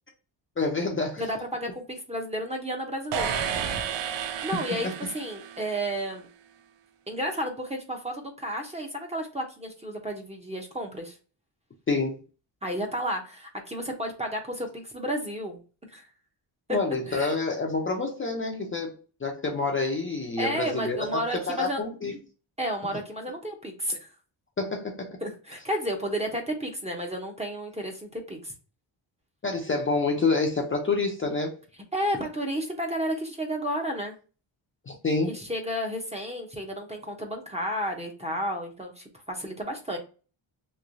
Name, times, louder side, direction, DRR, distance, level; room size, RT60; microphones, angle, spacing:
voice 1, 0.6-1.3 4.8-4.9 11.9-12.2 16.7-22.1 24.6-25.2 29.4-31.6 34.9-35.4, left 3 dB, 25° left, 0.6 m, -28 dB
voice 2, 1.2-3.3 4.4-6.3 7.1-11.2 12.6-16.0 17.1-17.3 20.4-21.8 22.6-24.1 25.2-28.5 31.9-34.1 35.3-40.0, equal, 15° right, 0.7 m, -32 dB
sound 1, 3.1-5.9, right 7 dB, 60° right, 0.6 m, -31 dB
3.1 x 2.9 x 2.6 m
cardioid pair, 115°, 48 cm